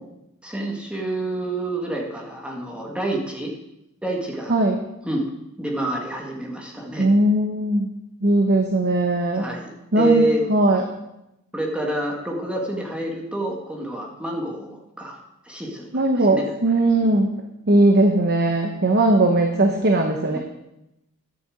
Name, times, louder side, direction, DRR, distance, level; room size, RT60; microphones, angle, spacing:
voice 1, 0.4-3.5 4.0-4.5 5.0-5.3 5.6-7.1 9.3-9.7 10.0-10.4 11.5-15.2 15.5-16.0 16.3-16.4, right 2 dB, 5° right, -1 dB, 1.7 m, -27 dB
voice 2, 7.0-7.9 8.2-9.4 9.9-10.8 15.9-17.3 17.7-20.4, right 1 dB, 45° right, 3 dB, 1.1 m, -19 dB
12.0 x 6.9 x 7.7 m, 0.89 s
head